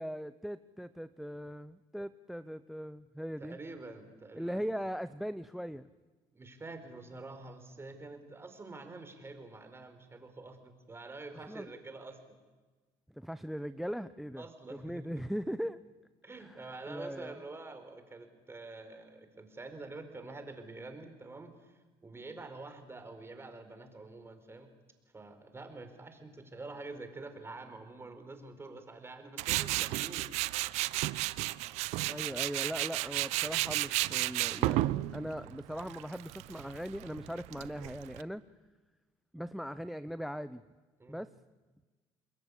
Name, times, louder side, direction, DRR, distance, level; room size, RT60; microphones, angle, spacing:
voice 1, 0.0-3.6 4.3-5.9 11.5-11.7 13.2-14.4 14.7-15.8 16.4-17.4 32.1-38.4 39.3-40.6 41.1-41.3, equal, ahead, 15 dB, 0.7 m, -39 dB
voice 2, 3.4-4.6 6.3-12.4 14.4-15.1 16.2-24.7 25.1-30.3 41.0-41.2, right 3 dB, 20° right, 8 dB, 4.5 m, -47 dB
Tools, 29.4-38.2, right 18 dB, 80° right, 0.8 m, -33 dB
28.5 x 21.0 x 8.5 m, 1.3 s
supercardioid pair, 90°, 11 cm